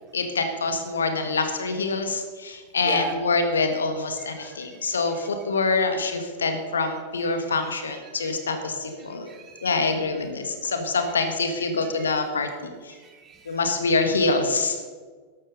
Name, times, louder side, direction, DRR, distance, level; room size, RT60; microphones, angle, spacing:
voice 1, 0.1-9.3 9.6-13.0 13.5-14.8, left 3 dB, 70° left, 7 dB, 1.8 m, -25 dB
voice 2, 4.2-4.6 7.9-8.0 9.0-9.8 12.9-13.6, right 3 dB, 25° right, 5 dB, 2.1 m, -38 dB
13.5 x 12.0 x 5.4 m, 1.5 s
figure-of-eight pair, 90°, 0 cm